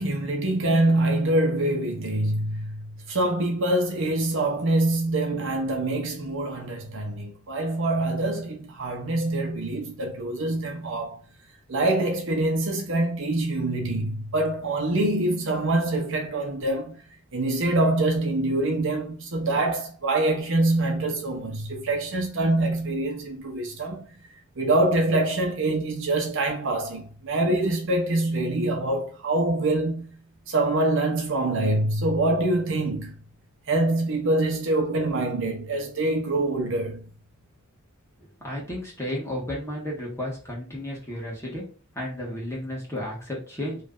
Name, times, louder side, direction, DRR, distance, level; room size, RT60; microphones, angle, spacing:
voice 1, 0.0-11.2 11.7-17.0 17.3-24.1 24.6-30.1 30.5-33.1 33.7-37.0, right 2 dB, 65° right, 0.9 m, -25 dB
voice 2, 38.4-41.6 41.9-43.8, left 1 dB, 15° left, 1.5 m, -33 dB
3.2 x 2.7 x 3.7 m
head